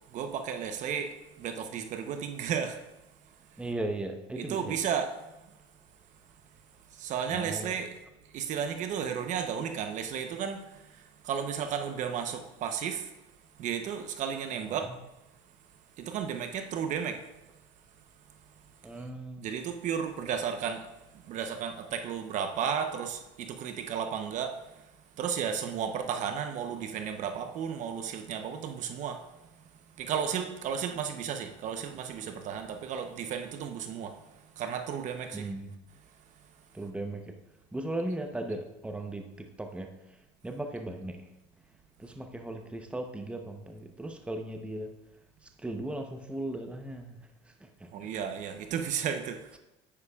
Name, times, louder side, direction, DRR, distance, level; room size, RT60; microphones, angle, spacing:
voice 1, 0.1-2.8 4.4-5.1 6.9-7.9 8.3-11.0 11.2-13.1 13.6-14.9 16.0-17.2 19.4-20.9 21.3-24.6 25.2-29.2 30.0-34.1 34.6-35.5 47.9-49.4, right 7 dB, 50° right, 6 dB, 0.9 m, -33 dB
voice 2, 3.6-4.8 7.3-7.7 14.7-15.0 18.8-19.5 35.3-35.8 36.7-37.4 37.7-41.3 42.0-44.9 45.4-48.1, right 1 dB, 5° right, 5 dB, 0.9 m, -37 dB
9.7 x 9.6 x 2.5 m, 0.96 s
supercardioid pair, 90°, 16 cm